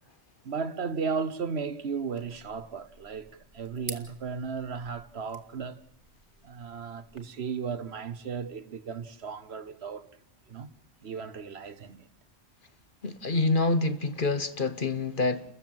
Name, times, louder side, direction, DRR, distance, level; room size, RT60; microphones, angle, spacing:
voice 1, 0.4-5.8 6.4-10.1 10.5-10.7 11.0-12.1, right 5 dB, 60° right, 1.2 m, -35 dB
sound 1, 2.2-7.2, right 2 dB, 25° right, 2.4 m, -48 dB
voice 2, 13.0-15.4, left 3 dB, 45° left, 1.4 m, -27 dB
30.0 x 14.5 x 7.7 m
omnidirectional pair, 1.2 m